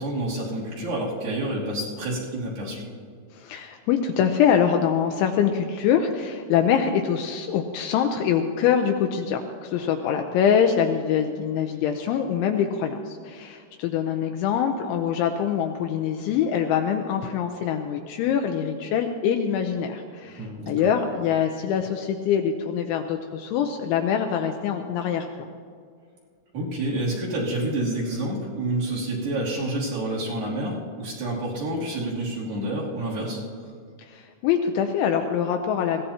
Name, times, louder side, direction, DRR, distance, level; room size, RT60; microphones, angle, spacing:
voice 1, 0.0-2.8 20.4-20.9 26.5-33.4, right 1 dB, 50° right, -4 dB, 4.3 m, -28 dB
voice 2, 3.3-25.3 34.0-36.0, left 8 dB, 80° left, 4 dB, 2.8 m, -24 dB
22.0 x 17.0 x 2.9 m, 2.1 s
omnidirectional pair, 5.8 m